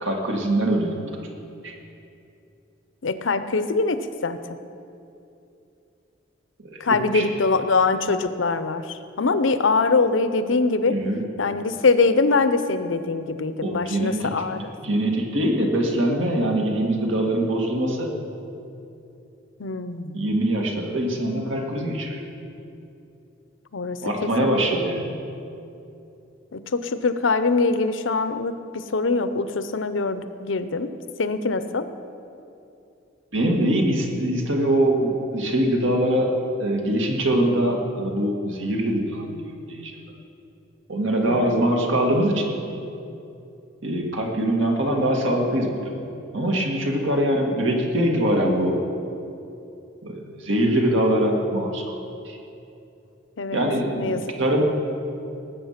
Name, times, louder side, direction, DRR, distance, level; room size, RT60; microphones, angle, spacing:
voice 1, 0.0-1.1 1.6-1.7 6.6-7.2 10.8-11.2 13.6-18.1 20.1-22.2 24.0-25.2 33.3-36.3 36.6-40.1 40.9-42.5 43.8-46.1 46.3-48.8 50.0-52.0 52.2-52.4 53.5-54.6, right 1 dB, 80° right, 1 dB, 2.1 m, -23 dB
voice 2, 3.0-4.4 6.8-11.0 11.4-14.7 19.6-20.1 23.7-24.5 26.5-30.9 31.2-31.9 41.2-41.6 53.4-53.6 54.0-54.2, left 4 dB, 85° left, 11 dB, 0.7 m, -23 dB
19.0 x 8.1 x 5.9 m, 2.7 s
head